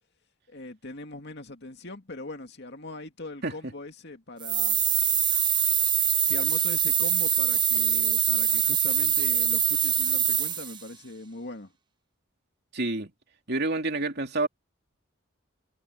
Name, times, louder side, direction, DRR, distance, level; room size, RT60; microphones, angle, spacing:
voice 1, 0.5-4.8 6.2-11.7, left 2 dB, 60° left, 2.4 m, -41 dB
sound 1, 4.4-10.8, right 9 dB, 25° right, 0.9 m, -24 dB
voice 2, 12.7-13.1 13.5-14.5, right 2 dB, 55° right, 3.2 m, -28 dB
head